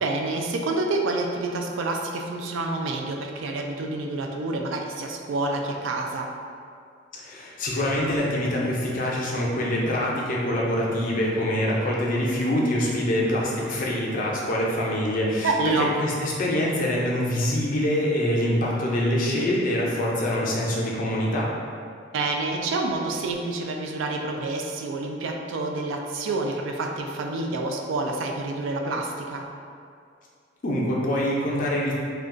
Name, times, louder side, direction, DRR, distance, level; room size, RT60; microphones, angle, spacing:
voice 1, 0.0-6.3 15.4-16.0 22.1-29.5, right 2 dB, 80° right, 2 dB, 0.3 m, -28 dB
voice 2, 7.1-15.5 16.0-21.5 30.6-31.9, left 1 dB, 45° left, -4 dB, 0.5 m, -25 dB
2.4 x 2.2 x 3.6 m, 2.3 s
head